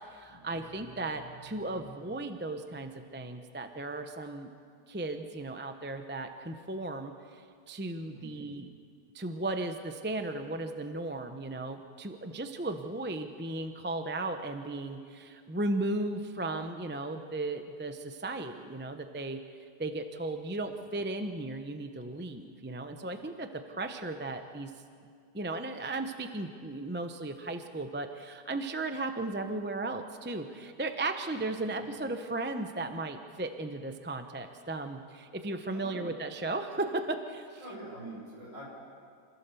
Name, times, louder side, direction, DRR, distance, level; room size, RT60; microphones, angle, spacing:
voice 1, 0.1-4.5 4.9-8.7 9.1-19.4 19.8-24.7 25.3-37.6, right 2 dB, 10° right, 6 dB, 0.5 m, -36 dB
voice 2, 8.1-8.5 20.6-20.8 31.6-31.9 35.7-36.0 37.6-38.7, right 1 dB, 45° right, -4 dB, 6.9 m, -46 dB
26.5 x 16.0 x 7.0 m, 2.2 s
omnidirectional pair, 1.8 m